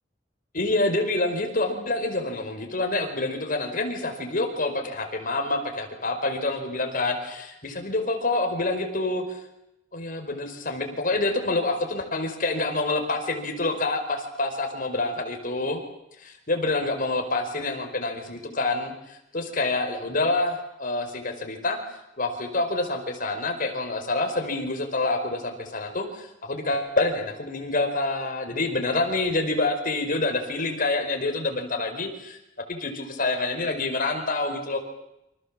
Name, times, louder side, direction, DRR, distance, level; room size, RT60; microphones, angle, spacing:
voice 1, 0.5-9.4 9.9-15.8 16.2-21.8 22.2-32.4 32.7-34.8, left 2 dB, 50° left, 5 dB, 5.0 m, -27 dB
29.0 x 25.5 x 7.6 m, 0.88 s
head